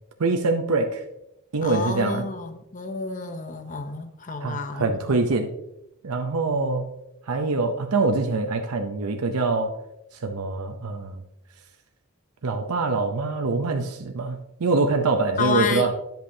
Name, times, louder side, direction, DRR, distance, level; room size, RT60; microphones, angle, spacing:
voice 1, 0.2-1.0 1.5-2.2 4.4-5.5 6.0-6.9 7.3-9.7 10.2-11.2 12.4-15.9, right 3 dB, 90° right, 4 dB, 0.7 m, -24 dB
voice 2, 1.6-5.2 15.4-15.9, left 4 dB, 35° left, 8 dB, 0.7 m, -30 dB
10.5 x 7.9 x 2.8 m, 0.87 s
head